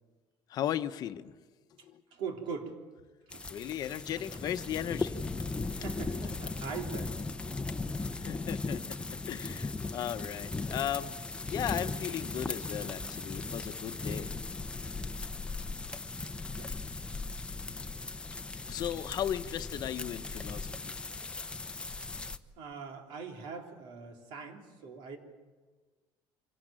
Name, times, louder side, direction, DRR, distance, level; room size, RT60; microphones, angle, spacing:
voice 1, 0.5-1.3 1.8-2.0 3.5-5.2 8.1-8.8 9.3-11.2 11.5-14.3 18.7-20.9, left 11 dB, 50° left, 9 dB, 0.9 m, -36 dB
voice 2, 2.1-2.7 3.3-3.5 4.2-4.3 5.6-7.1 7.4-7.5 16.5-16.7 22.6-25.2, right 5 dB, 75° right, 2 dB, 3.7 m, -41 dB
sound 1, 3.3-22.4, left 3 dB, 10° left, 0.8 m, -38 dB
25.5 x 18.0 x 8.9 m, 1.4 s
cardioid pair, 150°, 9 cm